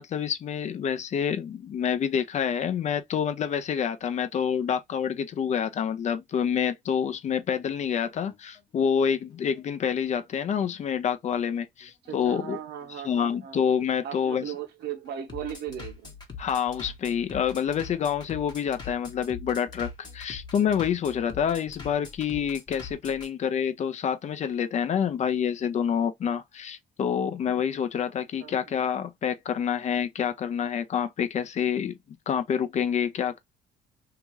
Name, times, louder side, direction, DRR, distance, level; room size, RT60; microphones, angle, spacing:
voice 1, 0.0-12.6 13.0-14.4 16.4-31.9 32.3-33.4, left 8 dB, 45° left, 0.5 m, -27 dB
Bass drum, 7.3-23.3, left 4 dB, 25° left, 1.0 m, -43 dB
voice 2, 12.1-13.6 14.0-16.1 28.4-28.6, right 9 dB, 70° right, 0.8 m, -37 dB
2.8 x 2.3 x 3.0 m
cardioid pair, 110°, 17 cm